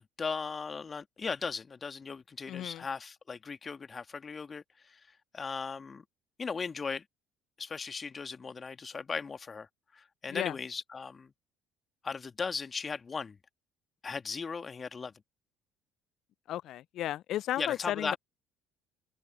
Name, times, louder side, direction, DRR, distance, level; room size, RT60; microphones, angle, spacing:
voice 1, 0.0-6.0 6.4-7.0 7.6-9.7 9.9-11.3 12.0-13.4 14.0-15.1 17.6-18.2, left 5 dB, 30° left, 2.2 m, -37 dB
voice 2, 2.5-2.8 10.3-10.6 16.5-18.2, left 13 dB, 55° left, 0.4 m, -34 dB
open air
figure-of-eight pair, 55°, 0 cm